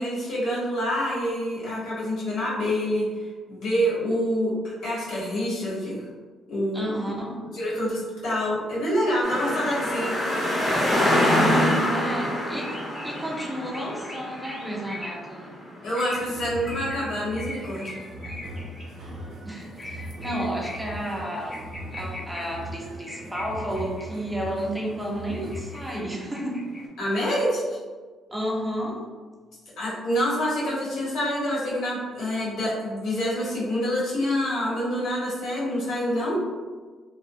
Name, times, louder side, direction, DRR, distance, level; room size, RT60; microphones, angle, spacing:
voice 1, 0.0-6.0 6.5-6.9 7.5-10.1 15.8-17.9 27.0-27.8 29.8-36.4, equal, 80° left, -7 dB, 1.1 m, -27 dB
voice 2, 6.7-7.5 11.3-12.8 13.0-15.6 19.5-21.6 21.9-26.7 28.3-29.1, equal, 5° right, -2 dB, 0.5 m, -32 dB
sound 1, 9.2-17.1 17.4-19.2 19.5-22.4 22.7-22.8 23.1-24.0 24.3-24.8 25.2-26.8, left 1 dB, 25° left, 0.7 m, -27 dB
sound 2, 16.1-26.0, equal, 65° right, 0.6 m, -40 dB
2.5 x 2.0 x 2.6 m, 1.4 s
cardioid pair, 90°, 0 cm